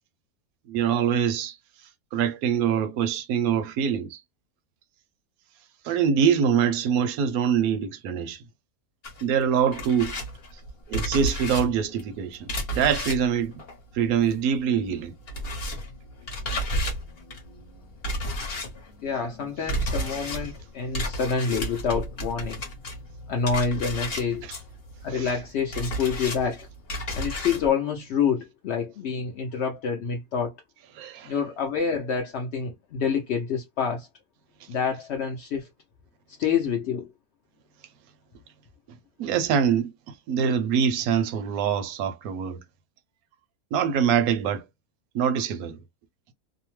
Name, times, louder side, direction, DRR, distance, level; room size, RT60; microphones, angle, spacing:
voice 1, 0.7-1.6 2.1-4.2 5.8-8.4 9.2-10.1 10.9-13.5 13.9-15.1 25.1-25.3 31.0-31.3 39.2-39.9 40.3-42.6 43.7-44.6 45.1-45.8, right 7 dB, 70° right, 0.9 m, -24 dB
sound 1, 9.0-14.6 14.8-27.7, equal, 45° left, 1.0 m, -33 dB
voice 2, 19.0-22.6 23.3-24.5 25.0-26.7 27.1-30.6 31.2-34.1 34.7-35.7 36.4-37.1, left 6 dB, 65° left, 0.6 m, -27 dB
2.7 x 2.0 x 3.0 m
omnidirectional pair, 1.7 m